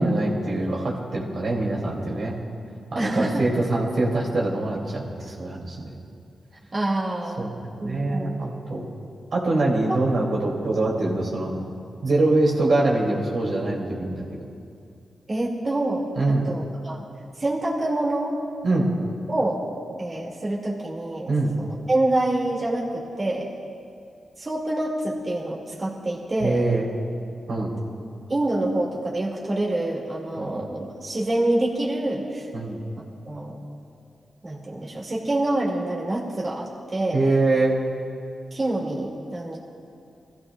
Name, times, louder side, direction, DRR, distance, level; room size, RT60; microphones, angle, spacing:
voice 1, 0.0-2.3 2.9-5.9 7.4-7.5 7.8-8.9 9.3-11.7 12.0-14.4 16.1-16.4 18.6-18.9 21.3-21.5 26.4-26.9 27.5-27.7 30.4-30.5 32.5-32.8 37.1-37.8, right 2 dB, 65° right, -3 dB, 3.0 m, -24 dB
voice 2, 2.9-3.4 6.7-7.5 7.8-8.5 9.9-10.0 15.3-17.0 17.4-18.4 19.3-19.6 19.9-21.3 21.6-23.5 24.4-26.6 28.3-32.5 33.2-33.6 34.4-37.2 38.5-39.6, right 1 dB, 35° right, -4 dB, 2.4 m, -26 dB
23.5 x 15.0 x 2.5 m, 2.4 s
cardioid pair, 70°, 0 cm